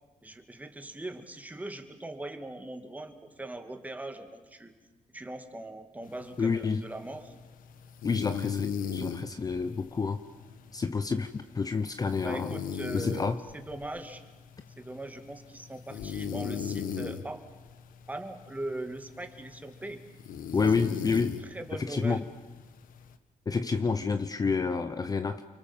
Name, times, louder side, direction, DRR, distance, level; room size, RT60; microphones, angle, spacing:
voice 1, 0.2-4.7 5.1-7.3 12.2-14.2 14.8-17.4 18.1-20.0 20.6-20.9 21.2-22.2, right 1 dB, 10° right, 6 dB, 2.3 m, -40 dB
sound 1, 6.0-23.2, left 7 dB, 85° left, 1.4 m, -39 dB
voice 2, 6.4-6.9 8.0-10.2 10.7-12.6 12.9-13.4 20.5-21.4 21.7-22.3 23.5-25.4, left 5 dB, 25° left, 10 dB, 0.9 m, -29 dB
29.5 x 23.5 x 7.4 m, 1.2 s
cardioid pair, 130°, 14 cm